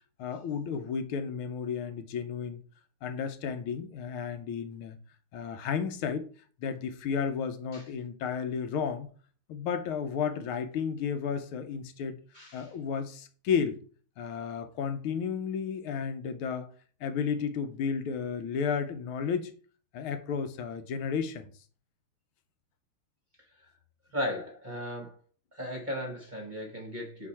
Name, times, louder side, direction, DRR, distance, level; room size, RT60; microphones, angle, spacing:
voice 1, 0.2-2.6 3.0-5.0 5.3-6.3 6.6-9.1 9.5-12.2 12.5-13.8 14.2-16.7 17.0-19.5 19.9-21.5, left 6 dB, 85° left, 1.7 m, -32 dB
voice 2, 12.3-12.7 24.1-25.2 25.5-27.3, equal, 30° right, 1.0 m, -36 dB
5.3 x 4.6 x 4.2 m
omnidirectional pair, 2.3 m